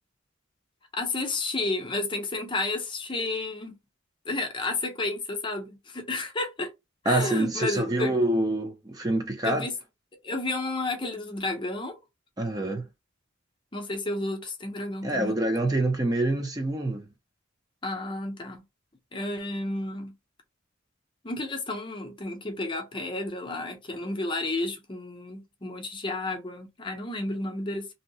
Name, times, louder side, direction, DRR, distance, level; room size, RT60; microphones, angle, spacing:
voice 1, 0.9-3.8 4.3-6.7 7.0-8.1 9.4-9.7 10.2-12.0 13.7-15.4 17.8-18.6 19.1-20.1 21.2-27.9, left 2 dB, 25° left, 0.6 m, -31 dB
voice 2, 7.1-9.7 12.4-12.9 15.0-17.0, right 1 dB, 20° right, 0.5 m, -26 dB
2.7 x 2.0 x 4.0 m
head